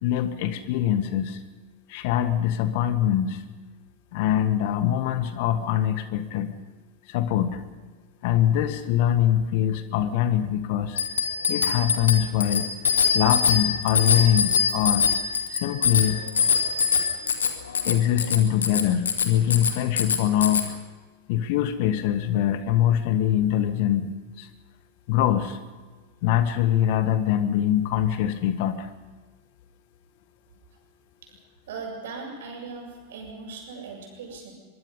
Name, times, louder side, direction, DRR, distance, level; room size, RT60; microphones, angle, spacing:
voice 1, 0.0-1.4 1.9-3.4 4.1-6.5 7.1-7.6 8.2-11.0 11.5-12.7 13.1-15.1 15.5-16.2 17.9-20.8 21.3-24.5 25.1-25.6 26.2-28.9, left 11 dB, 50° left, 11 dB, 1.6 m, -23 dB
Bicycle bell, 11.0-20.7, left 6 dB, 70° left, 2.3 m, -24 dB
voice 2, 31.7-34.5, right 4 dB, 60° right, 2 dB, 7.3 m, -38 dB
24.0 x 23.0 x 5.5 m, 1.4 s
figure-of-eight pair, 90°, 0 cm